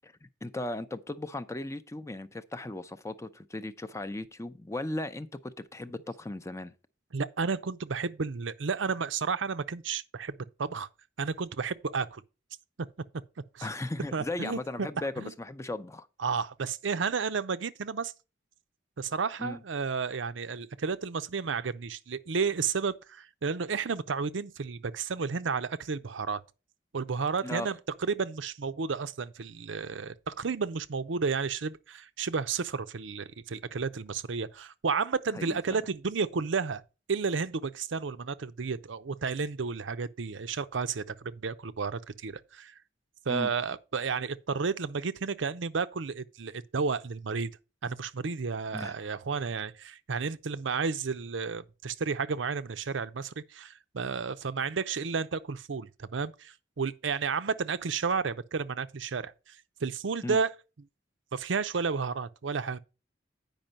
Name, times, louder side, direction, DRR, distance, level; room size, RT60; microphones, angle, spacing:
voice 1, 0.0-6.7 13.6-16.1 19.4-19.6 27.4-27.7 35.3-35.8 43.3-43.5 48.7-49.0 60.2-60.4, left 2 dB, 15° left, 0.6 m, -37 dB
voice 2, 7.1-10.9 11.2-12.2 13.5-13.7 14.1-14.9 15.2-15.3 16.2-18.1 19.0-26.4 26.9-36.8 37.1-42.7 43.3-47.5 47.8-59.6 59.8-60.5 61.3-62.8, right 5 dB, 85° right, 0.6 m, -32 dB
9.0 x 5.3 x 5.3 m
head